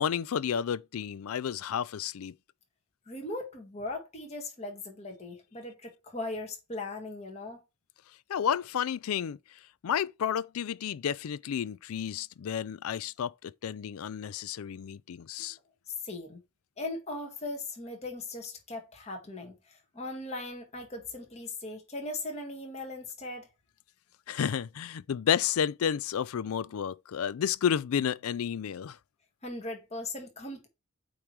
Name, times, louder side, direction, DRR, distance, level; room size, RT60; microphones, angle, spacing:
voice 1, 0.0-2.3 8.3-9.4 9.8-15.6 24.3-29.0, left 8 dB, 80° left, 0.4 m, -31 dB
voice 2, 3.1-7.6 16.0-16.4 16.8-23.5 29.4-30.7, left 2 dB, 30° left, 1.7 m, -39 dB
8.7 x 3.1 x 4.7 m
head